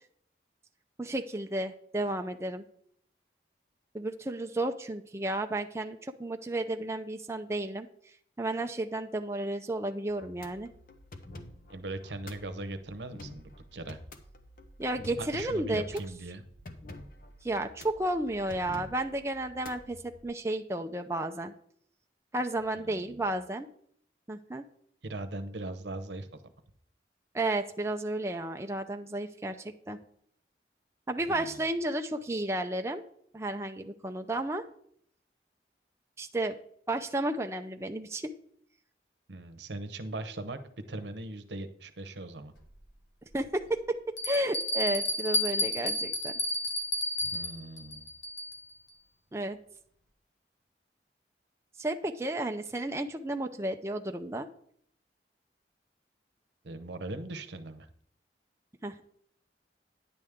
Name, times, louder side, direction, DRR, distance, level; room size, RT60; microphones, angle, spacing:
voice 1, 1.0-2.6 3.9-7.9 8.4-10.7 14.8-15.8 17.4-21.5 22.3-23.7 24.3-24.6 27.3-30.0 31.1-33.0 33.3-34.6 36.2-36.6 36.9-38.3 43.3-46.3 49.3-49.6 51.8-54.5 58.8-59.0, right 1 dB, 15° right, 5 dB, 0.5 m, -32 dB
sound 1, 10.1-20.3, left 1 dB, 50° left, 0.9 m, -49 dB
voice 2, 11.7-14.0 15.2-16.4 22.8-23.1 25.0-26.3 31.3-31.5 39.3-40.6 40.9-42.5 47.2-48.1 56.6-57.9, right 2 dB, 85° right, 10 dB, 0.8 m, -39 dB
Bell, 42.6-42.7 43.3-43.4 44.2-48.7, left 1 dB, 80° left, 1.4 m, -31 dB
10.0 x 8.1 x 3.6 m, 0.63 s
head